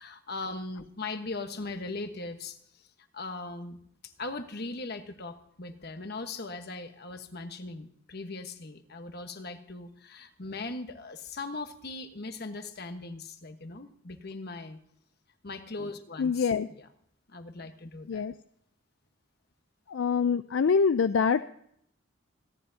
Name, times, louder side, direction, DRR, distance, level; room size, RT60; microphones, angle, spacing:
voice 1, 0.0-2.6 3.1-3.8 4.0-14.8 15.4-16.9 17.3-18.3, left 3 dB, 50° left, 8 dB, 1.2 m, -39 dB
voice 2, 16.2-16.7 18.1-18.3 19.9-21.4, left 5 dB, 70° left, 13 dB, 0.4 m, -25 dB
26.5 x 10.5 x 2.7 m, 0.70 s
head